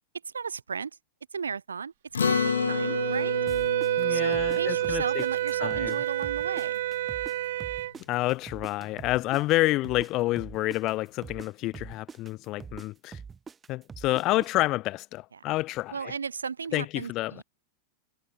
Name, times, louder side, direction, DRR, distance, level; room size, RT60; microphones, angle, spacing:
voice 1, 0.3-0.9 1.3-1.9 2.2-3.4 4.1-6.8 15.3-15.4 15.9-17.4, right 6 dB, 75° right, 0.9 m, -35 dB
Acoustic guitar, 2.1-6.8, left 6 dB, 70° left, 1.0 m, -32 dB
Wind instrument woodwind instrument, 2.2-7.9, right 14 dB, 55° right, 0.4 m, -28 dB
sound 1, 3.5-6.0 6.2-10.1 10.4-14.5, right 6 dB, 15° right, 2.4 m, -44 dB
voice 2, 4.0-5.2 5.6-6.0 8.1-13.2 13.7-16.1 16.7-17.4, left 18 dB, 40° left, 0.7 m, -28 dB
figure-of-eight pair, 90°, 0 cm